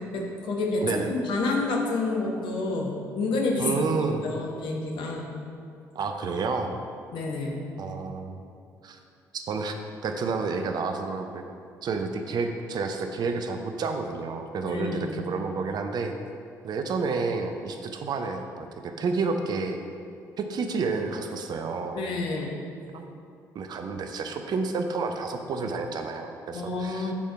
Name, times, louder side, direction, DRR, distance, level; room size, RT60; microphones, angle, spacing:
voice 1, 0.1-3.7 4.2-5.3 7.1-7.6 14.6-15.1 22.0-22.5 26.5-27.1, left 3 dB, 60° left, 0 dB, 1.0 m, -29 dB
voice 2, 3.6-4.2 5.9-6.8 7.8-8.5 8.8-9.0 9.3-9.8 10.0-11.4 11.8-16.2 16.6-19.8 20.4-22.0 22.9-23.2 23.5-27.1, right 4 dB, 50° right, 5 dB, 0.6 m, -30 dB
7.2 x 4.5 x 4.6 m, 2.4 s
figure-of-eight pair, 45°, 9 cm